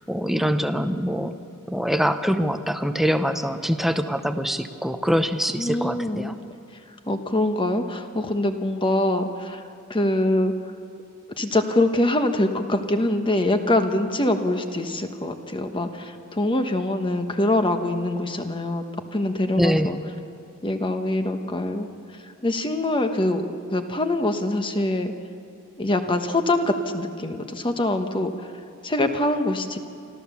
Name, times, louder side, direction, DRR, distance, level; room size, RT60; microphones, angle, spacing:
voice 1, 0.1-1.3 1.7-6.3 19.6-19.9, equal, ahead, 8 dB, 0.7 m, -24 dB
voice 2, 5.6-6.4 7.1-9.6 9.9-10.5 11.4-18.8 19.1-20.0 20.6-21.9 22.4-23.4 23.7-25.1 25.8-28.5 28.8-29.8, left 1 dB, 25° left, 6 dB, 1.2 m, -24 dB
25.5 x 14.5 x 7.1 m, 2.5 s
head